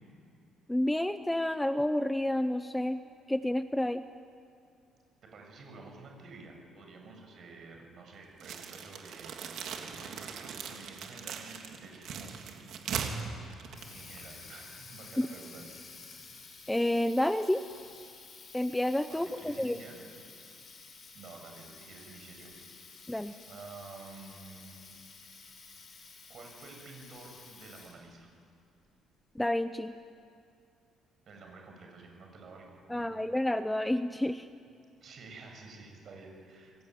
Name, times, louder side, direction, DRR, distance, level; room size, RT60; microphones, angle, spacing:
voice 1, 0.7-3.0 3.3-4.0 15.2-15.3 16.7-17.6 18.5-19.8 23.1-23.3 29.4-29.9 32.9-34.5, left 1 dB, 5° left, 11 dB, 0.6 m, -29 dB
voice 2, 5.2-12.4 13.9-15.8 16.2-16.4 19.1-20.0 21.1-22.5 23.5-24.8 25.6-26.0 26.3-28.3 31.3-33.2 35.0-36.8, right 3 dB, 45° right, 2 dB, 6.7 m, -50 dB
sound 1, 8.4-14.5, right 6 dB, 65° right, 3.2 m, -40 dB
Water tap faucet, 13.4-28.1, left 4 dB, 35° left, 5.2 m, -52 dB
26.5 x 22.5 x 9.4 m, 2.3 s
cardioid pair, 150°, 0 cm